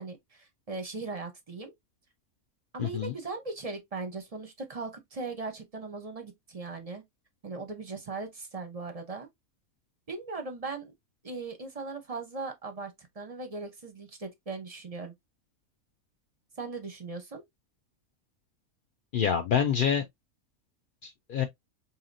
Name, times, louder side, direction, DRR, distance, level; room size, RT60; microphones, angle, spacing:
voice 1, 0.0-1.7 2.7-7.0 7.4-9.3 10.1-10.9 11.2-15.1 16.6-17.4, right 3 dB, 35° right, 0.6 m, -39 dB
voice 2, 2.8-3.1 19.1-20.0 21.0-21.4, left 8 dB, 75° left, 0.4 m, -27 dB
4.8 x 2.8 x 2.5 m
omnidirectional pair, 1.5 m